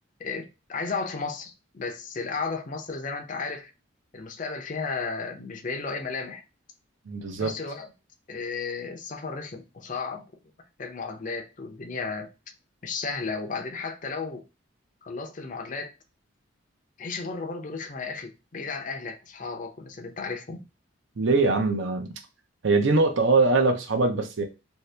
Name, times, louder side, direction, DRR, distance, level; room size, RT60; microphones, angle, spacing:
voice 1, 0.2-3.7 4.1-6.4 7.4-7.9 8.3-10.2 10.8-12.3 12.8-14.4 15.0-15.9 17.0-20.6, left 4 dB, 40° left, 0.5 m, -34 dB
voice 2, 7.1-7.5 21.2-22.1 22.6-24.4, right 3 dB, 65° right, 0.6 m, -22 dB
2.8 x 2.7 x 3.2 m
head